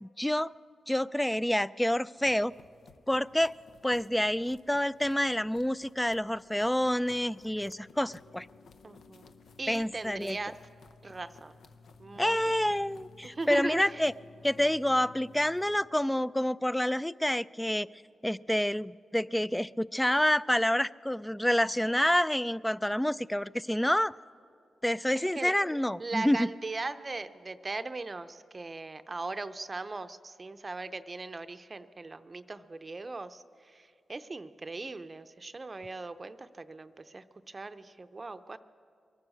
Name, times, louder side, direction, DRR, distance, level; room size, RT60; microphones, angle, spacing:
voice 1, 0.0-0.5 0.9-2.5 3.1-3.5 3.8-8.5 9.7-10.4 12.2-14.1 14.4-17.9 18.2-24.1 24.8-26.5, left 1 dB, 10° left, 19 dB, 0.3 m, -28 dB
sound 1, 2.2-15.8, left 4 dB, 75° left, 0.7 m, -56 dB
voice 2, 8.8-9.3 9.6-10.5 11.0-11.5 12.0-12.5 13.2-14.1 25.2-25.5 26.0-38.6, right 3 dB, 40° right, 11 dB, 0.6 m, -39 dB
23.0 x 9.7 x 6.4 m, 2.3 s
supercardioid pair, 45°, 0 cm